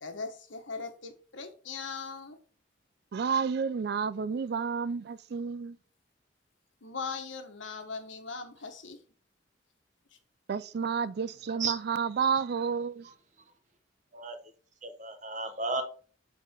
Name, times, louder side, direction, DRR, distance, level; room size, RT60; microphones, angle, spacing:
voice 1, 0.0-2.4 6.8-9.0, left 4 dB, 80° left, 1.3 m, -40 dB
voice 2, 3.1-5.8 10.5-13.1, right 6 dB, 55° right, 0.4 m, -30 dB
voice 3, 14.8-15.8, right 3 dB, 40° right, 1.1 m, -33 dB
8.0 x 4.2 x 4.4 m
head